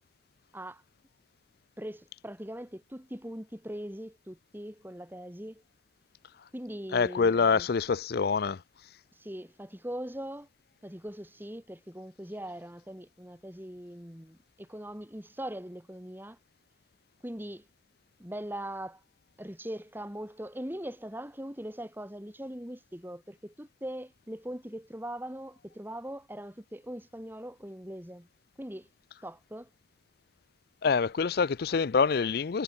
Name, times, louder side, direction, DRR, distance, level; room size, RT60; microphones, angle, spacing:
voice 1, 1.8-5.6 6.5-7.7 9.1-10.5 10.8-16.4 17.2-17.7 18.2-19.0 19.4-28.3 28.6-28.9 29.2-29.7, right 1 dB, 10° right, 2.7 m, -41 dB
voice 2, 6.9-8.6 30.8-32.6, left 5 dB, 55° left, 0.5 m, -26 dB
head